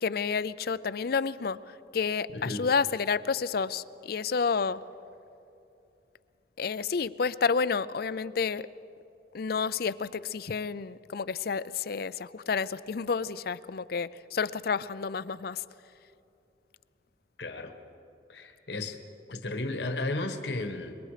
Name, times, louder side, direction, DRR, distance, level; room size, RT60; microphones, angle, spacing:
voice 1, 0.0-4.8 6.6-8.7 9.3-15.6, left 5 dB, 55° left, 17 dB, 0.5 m, -30 dB
voice 2, 2.3-2.6 17.4-17.7 18.3-19.0 19.3-20.9, left 2 dB, 70° left, 6 dB, 1.5 m, -34 dB
25.5 x 22.5 x 5.0 m, 2.7 s
head